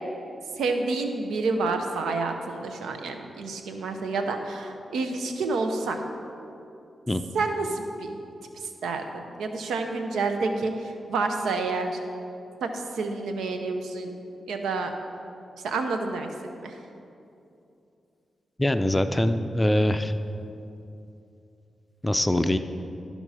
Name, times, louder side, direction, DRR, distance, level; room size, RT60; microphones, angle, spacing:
voice 1, 0.5-6.0 7.3-8.2 8.6-12.0 12.6-14.1 14.5-14.9 15.6-16.3 16.6-16.8, right 3 dB, 90° right, 5 dB, 0.7 m, -29 dB
voice 2, 18.6-20.1 22.0-22.6, left 1 dB, 15° left, 9 dB, 0.5 m, -23 dB
12.5 x 5.3 x 4.8 m, 2.7 s
cardioid pair, 60°, 0 cm